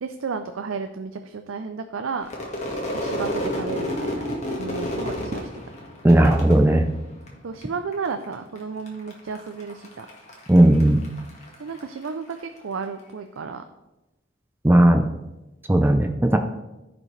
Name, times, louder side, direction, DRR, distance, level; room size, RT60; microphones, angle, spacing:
voice 1, 0.0-2.3 2.9-5.5 7.4-10.1 11.6-13.6, right 5 dB, 85° right, 8 dB, 0.5 m, -32 dB
Crowd / Fireworks, 2.2-7.6 7.9-8.6 8.9-12.4, left 1 dB, 35° left, 1.7 m, -31 dB
voice 2, 6.0-6.9 10.5-11.0 14.6-15.1 15.7-16.4, right 1 dB, 10° right, 5 dB, 0.4 m, -16 dB
14.5 x 5.1 x 3.3 m, 1.0 s
head